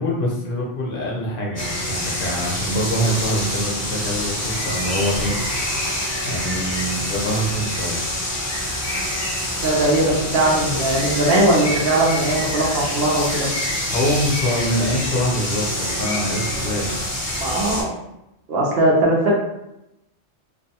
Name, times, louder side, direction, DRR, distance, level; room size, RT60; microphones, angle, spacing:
voice 1, 0.0-5.4 5.7-8.0 13.8-16.9, equal, 55° left, -3 dB, 0.8 m, -25 dB
sound 1, 1.6-17.8, left 1 dB, 20° left, 0.5 m, -26 dB
voice 2, 9.6-13.5 17.3-17.9 18.5-19.3, right 1 dB, 60° right, -3 dB, 0.8 m, -19 dB
2.5 x 2.2 x 2.7 m, 0.88 s
omnidirectional pair, 1.3 m